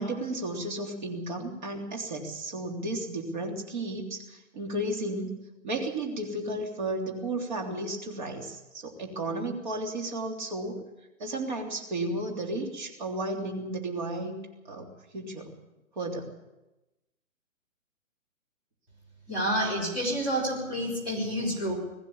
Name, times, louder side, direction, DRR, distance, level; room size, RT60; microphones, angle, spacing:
voice 1, 0.0-5.4 5.6-10.8 11.2-14.3 14.6-15.5 16.0-16.3, right 2 dB, 35° right, 2 dB, 3.3 m, -33 dB
voice 2, 19.3-21.7, equal, 10° right, -7 dB, 4.9 m, -29 dB
21.5 x 14.5 x 8.6 m, 1.0 s
hypercardioid pair, 175°, 40 cm